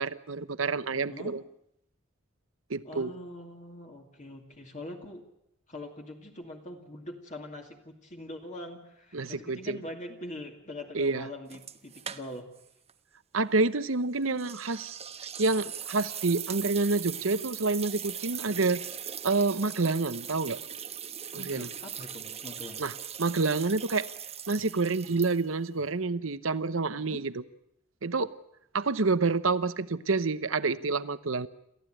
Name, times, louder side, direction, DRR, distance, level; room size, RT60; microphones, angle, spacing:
voice 1, 0.0-1.4 2.7-3.1 9.1-9.8 10.9-11.2 13.3-15.0 15.4-18.8 19.2-20.6 21.3-21.7 22.8-22.9 23.2-24.1 24.5-27.3 28.0-28.3 28.7-31.5, right 3 dB, 70° right, 14 dB, 1.0 m, -28 dB
voice 2, 0.9-1.3 2.8-5.2 5.7-12.5 18.4-18.7 21.4-22.9 26.9-27.2, left 1 dB, 35° left, 2 dB, 2.4 m, -43 dB
sound 1, 11.5-12.6 12.9-13.0 14.4-25.7, right 8 dB, 30° right, 1.2 m, -40 dB
28.5 x 14.5 x 9.0 m, 0.78 s
head